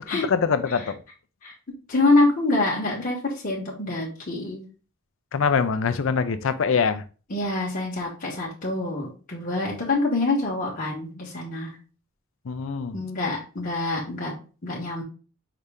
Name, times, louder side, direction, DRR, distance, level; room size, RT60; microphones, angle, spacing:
voice 1, 0.1-1.0 5.3-7.0 12.4-13.0, left 5 dB, 65° left, 11 dB, 0.4 m, -24 dB
voice 2, 1.9-4.6 7.3-11.8 12.9-15.0, left 2 dB, 40° left, -4 dB, 1.0 m, -25 dB
5.0 x 2.7 x 3.3 m, 0.35 s
head